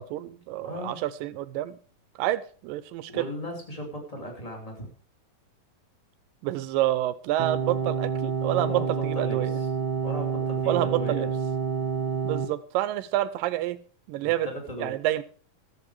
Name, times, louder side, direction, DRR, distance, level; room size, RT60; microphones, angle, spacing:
voice 1, 0.0-1.8 2.2-3.3 6.4-8.7 9.0-9.6 10.7-11.3 12.2-13.8 14.1-14.5 14.8-15.2, right 14 dB, 80° right, 15 dB, 2.3 m, -28 dB
voice 2, 0.6-1.0 3.1-4.9 8.5-9.7 10.0-11.3 14.2-15.0, equal, 10° left, 2 dB, 2.3 m, -37 dB
sound 1, 7.4-12.5, right 6 dB, 40° right, 2.2 m, -28 dB
14.0 x 7.8 x 4.8 m, 0.43 s
omnidirectional pair, 4.0 m